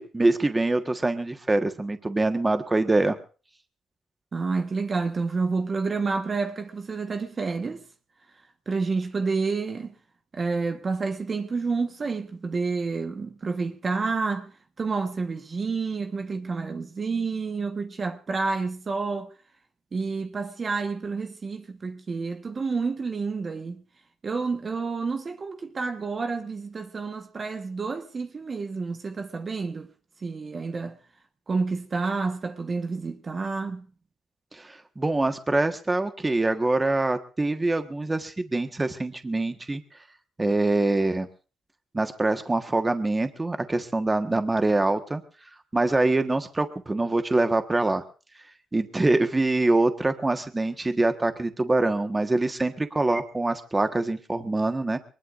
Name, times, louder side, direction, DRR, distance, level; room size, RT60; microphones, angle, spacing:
voice 1, 0.0-3.2 34.5-39.8 40.4-41.3 41.9-45.2 45.7-48.0 48.7-55.0, right 2 dB, 20° right, 1.4 m, -24 dB
voice 2, 4.3-7.8 8.7-9.9 10.3-14.5 14.8-19.3 19.9-23.8 24.2-29.9 30.2-31.0 31.5-33.9, right 4 dB, 35° right, 1.3 m, -29 dB
23.0 x 20.0 x 2.6 m
cardioid pair, 90°, 0 cm